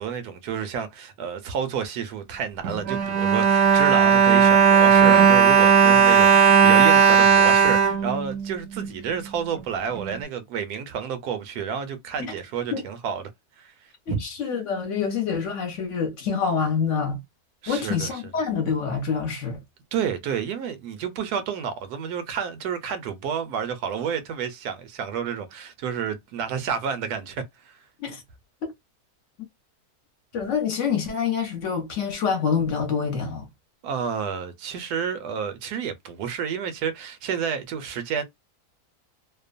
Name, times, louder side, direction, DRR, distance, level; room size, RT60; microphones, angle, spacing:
voice 1, 0.0-13.3 13.6-13.7 14.1-14.2 17.6-18.1 19.9-27.8 33.8-38.2, right 7 dB, 85° right, 1.2 m, -30 dB
Bowed string instrument, 2.6-8.9 9.6-9.7 10.0-10.1, right 6 dB, 70° right, 0.9 m, -16 dB
voice 2, 14.1-17.2 17.7-19.6 28.0-28.2 28.6-28.7 30.3-33.5, left 6 dB, 60° left, 1.0 m, -26 dB
2.9 x 2.1 x 2.4 m
omnidirectional pair, 1.6 m